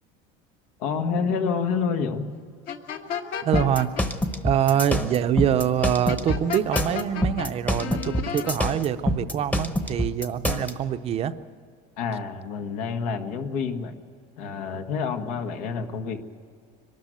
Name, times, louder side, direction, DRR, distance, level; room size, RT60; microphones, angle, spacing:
voice 1, 0.8-2.3 12.0-13.9 14.4-16.2, left 5 dB, 85° left, 6 dB, 1.7 m, -28 dB
sound 1, 2.7-4.1 6.1-7.5 7.8-8.6, left 8 dB, 55° left, 1.5 m, -32 dB
voice 2, 3.4-3.9 4.4-11.3, right 9 dB, 35° right, 11 dB, 0.6 m, -24 dB
sound 2, 3.5-10.7, left 1 dB, 10° left, 1.0 m, -26 dB
23.5 x 13.0 x 9.2 m, 2.2 s
cardioid pair, 150°, 18 cm